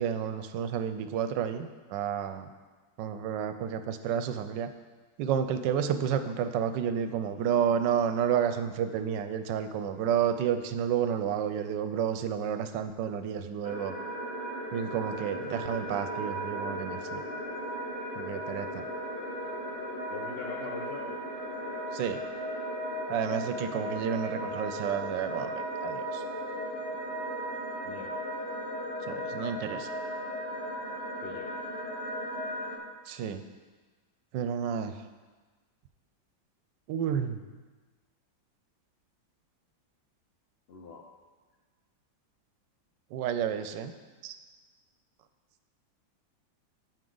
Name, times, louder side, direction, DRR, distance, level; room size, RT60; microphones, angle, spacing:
voice 1, 0.0-2.5 3.0-4.7 5.2-13.9 14.7-17.2 18.2-18.8 21.9-22.2 23.1-25.5 25.8-26.2 29.1-29.9 33.1-33.4 34.3-34.9 36.9-37.4 43.1-43.9 44.2-44.4, right 8 dB, 75° right, 9 dB, 1.2 m, -30 dB
sound 1, 13.6-32.8, equal, 35° left, 1.9 m, -36 dB
voice 2, 20.1-21.1 27.8-28.1 31.2-31.5 40.7-41.0, left 4 dB, 70° left, 0 dB, 0.6 m, -41 dB
13.5 x 4.9 x 3.9 m, 1.3 s
omnidirectional pair, 2.1 m